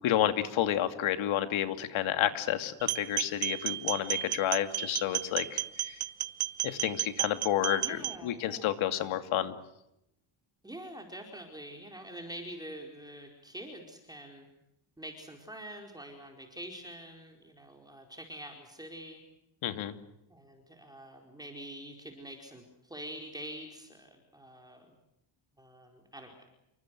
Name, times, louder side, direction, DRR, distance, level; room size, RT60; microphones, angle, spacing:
voice 1, 0.0-6.0 6.6-9.5 19.6-19.9, left 11 dB, 75° left, 9 dB, 2.7 m, -30 dB
sound 1, 2.8-8.2, right 15 dB, 90° right, 1.3 m, -33 dB
voice 2, 7.8-8.7 10.6-14.5 15.0-19.2 20.3-24.9 25.6-26.5, right 1 dB, 10° right, 2 dB, 4.7 m, -45 dB
29.5 x 24.5 x 6.3 m, 0.83 s
cardioid pair, 135°, 47 cm